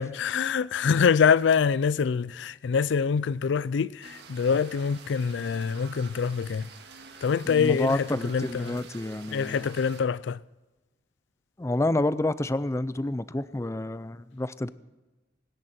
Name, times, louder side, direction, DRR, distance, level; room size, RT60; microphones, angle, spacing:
voice 1, 0.0-6.7 7.2-8.8 9.3-10.4, left 6 dB, 75° left, 0.4 m, -25 dB
sound 1, 4.0-10.0, right 5 dB, 60° right, 1.9 m, -48 dB
voice 2, 7.5-9.7 11.6-14.7, left 1 dB, 15° left, 0.4 m, -29 dB
25.0 x 11.0 x 4.3 m
head